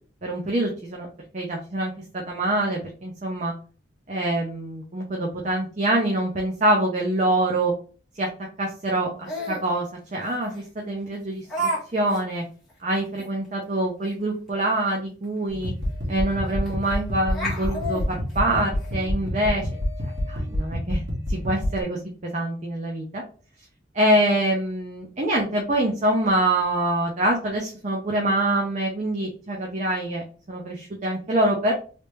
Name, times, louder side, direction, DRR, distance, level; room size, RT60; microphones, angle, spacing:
voice 1, 0.2-1.1 1.3-3.5 4.1-7.7 8.2-8.3 8.6-9.9 10.1-12.4 12.8-15.7 16.1-19.7 20.3-21.0 21.3-23.2 23.9-31.7, right 1 dB, 40° right, -1 dB, 0.6 m, -25 dB
Laughter, 9.2-9.7 10.5-10.6 11.5-11.8 12.1-12.2 12.7-12.8 13.2-13.3 15.2-15.3 15.6-15.7 16.7-16.9 17.3-18.9, right 1 dB, ahead, 1.2 m, -30 dB
sound 1, 15.5-21.8, left 1 dB, 85° right, 1.5 m, -28 dB
3.3 x 2.8 x 3.1 m, 0.39 s
head